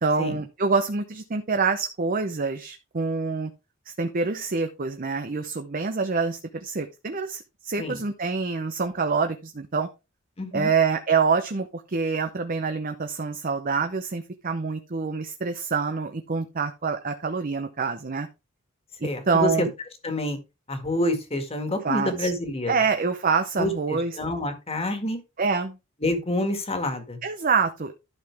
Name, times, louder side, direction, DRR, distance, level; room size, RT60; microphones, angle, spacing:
voice 1, 0.0-3.5 3.9-9.9 10.5-18.3 19.0-19.7 21.8-22.3 22.7-24.2 25.4-25.8 27.2-27.9, right 4 dB, 45° right, 7 dB, 0.7 m, -26 dB
voice 2, 10.4-10.7 19.0-19.7 20.0-20.4 20.7-22.8 23.6-25.2 26.0-27.2, left 1 dB, 30° left, 7 dB, 1.9 m, -28 dB
11.5 x 5.9 x 3.5 m, 0.26 s
head